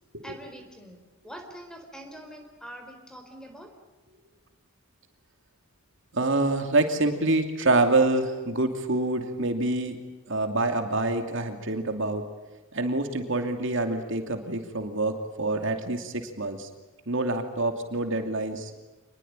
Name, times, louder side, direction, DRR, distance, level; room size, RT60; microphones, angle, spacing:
voice 1, 0.2-3.7, right 1 dB, 5° left, 5 dB, 4.5 m, -44 dB
voice 2, 6.1-10.0 10.3-12.2 12.7-16.7 17.1-18.7, right 2 dB, 60° right, 6 dB, 2.7 m, -26 dB
28.0 x 21.5 x 9.0 m, 1.1 s
head